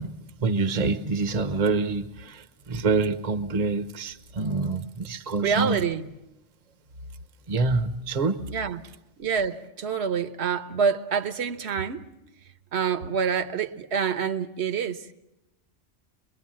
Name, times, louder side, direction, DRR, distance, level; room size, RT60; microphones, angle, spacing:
voice 1, 0.0-5.8 7.5-8.4, right 3 dB, 35° right, 1.0 m, -26 dB
voice 2, 5.4-6.0 8.4-8.8 9.2-12.1 12.7-15.1, right 6 dB, 65° right, 1.3 m, -27 dB
25.0 x 22.5 x 7.5 m
omnidirectional pair, 1.2 m